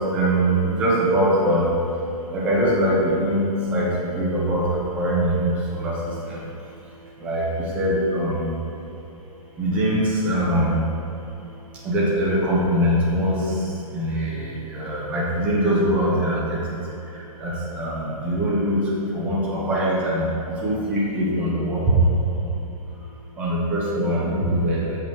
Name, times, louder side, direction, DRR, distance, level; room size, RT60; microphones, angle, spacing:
voice 1, 0.1-1.7 2.3-3.9 4.2-4.6 4.9-6.0 6.3-6.4 7.2-7.5 7.7-8.5 9.6-10.8 11.8-13.4 13.9-14.5 14.7-16.6 17.4-18.8 19.1-20.3 20.6-22.0 22.3-22.4 23.4-25.0, right 1 dB, 5° right, -6 dB, 0.6 m, -22 dB
7.0 x 5.3 x 4.5 m, 3.0 s
hypercardioid pair, 170°, 19 cm